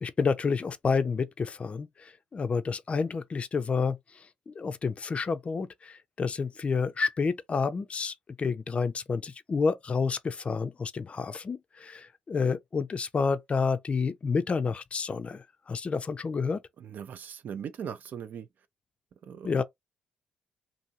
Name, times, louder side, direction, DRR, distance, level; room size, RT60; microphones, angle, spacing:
voice 1, 0.0-16.6 19.4-19.6, left 5 dB, 35° left, 0.4 m, -29 dB
voice 2, 16.8-18.5 19.2-19.6, right 8 dB, 55° right, 0.4 m, -39 dB
2.6 x 2.6 x 2.8 m
hypercardioid pair, 50°, 4 cm